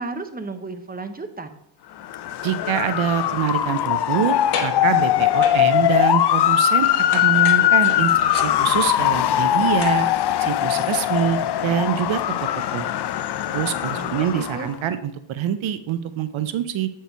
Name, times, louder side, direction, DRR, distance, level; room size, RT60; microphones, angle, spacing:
voice 1, 0.0-1.6 13.9-14.7, right 3 dB, 20° right, 8 dB, 0.8 m, -33 dB
Motor vehicle (road) / Siren, 2.0-14.7, left 12 dB, 55° left, 0.5 m, -21 dB
voice 2, 2.4-10.1 10.4-12.2 12.7-12.9 13.5-16.9, right 9 dB, 70° right, 11 dB, 0.6 m, -25 dB
sound 1, 2.6-2.8 3.1-4.3 4.5-4.9 5.4-6.8 7.1-10.1 10.4-10.5, left 5 dB, 80° left, 1.4 m, -33 dB
8.1 x 4.7 x 4.5 m, 0.79 s
cardioid pair, 90°, 49 cm